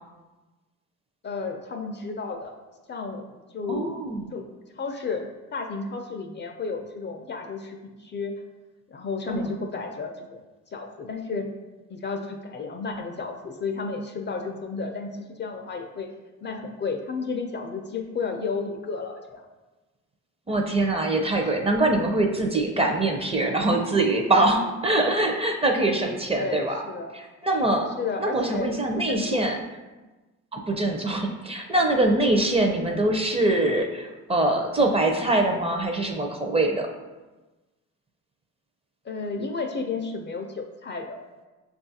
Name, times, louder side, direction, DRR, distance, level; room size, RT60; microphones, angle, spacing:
voice 1, 1.2-2.6 2.9-4.0 4.3-4.5 4.8-8.3 8.9-10.4 10.7-11.5 11.9-16.1 16.4-19.4 26.4-27.1 28.0-29.4 32.5-32.6 39.0-41.2, left 4 dB, 40° left, 4 dB, 0.4 m, -32 dB
voice 2, 3.7-4.3 9.3-9.5 20.5-26.8 27.1-27.9 28.2-29.6 30.5-36.9, right 2 dB, 20° right, 2 dB, 0.4 m, -23 dB
5.5 x 2.4 x 2.7 m, 1.2 s
cardioid pair, 90°, 30 cm